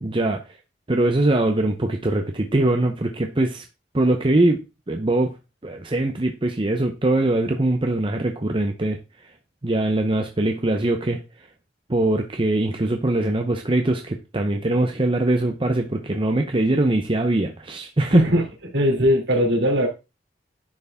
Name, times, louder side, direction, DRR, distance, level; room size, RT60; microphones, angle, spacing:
voice 1, 0.0-0.4 0.9-3.6 3.9-5.3 5.6-9.0 9.6-11.2 11.9-18.3, right 2 dB, 30° right, 0.8 m, -22 dB
voice 2, 18.1-18.4 18.7-19.9, equal, 70° right, 3.0 m, -19 dB
10.5 x 4.7 x 3.6 m
head